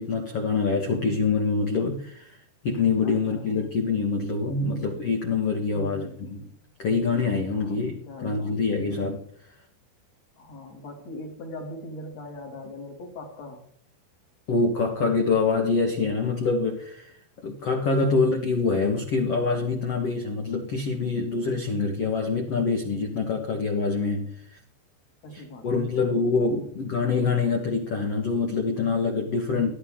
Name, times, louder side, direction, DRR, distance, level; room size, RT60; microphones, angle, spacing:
voice 1, 0.0-2.4 2.6-6.4 6.8-9.2 14.5-24.6 25.3-29.7, left 4 dB, 85° left, 2 dB, 1.3 m, -25 dB
voice 2, 3.0-3.5 5.7-6.5 7.5-8.6 10.4-13.6 18.0-18.2 25.2-26.7, left 1 dB, 40° left, 3 dB, 3.2 m, -41 dB
19.5 x 13.0 x 3.8 m, 0.65 s
omnidirectional pair, 5.5 m